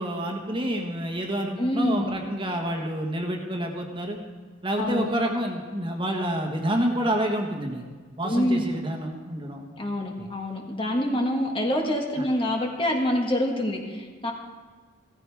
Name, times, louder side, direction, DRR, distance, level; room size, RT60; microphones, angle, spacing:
voice 1, 0.0-4.2 4.6-7.9 8.2-9.6 10.2-10.3 12.2-12.3, right 1 dB, 25° right, 1 dB, 1.4 m, -28 dB
voice 2, 1.6-2.1 4.8-5.1 8.2-8.6 9.8-14.3, left 1 dB, 30° left, 1 dB, 1.6 m, -26 dB
16.0 x 14.5 x 3.5 m, 1.5 s
head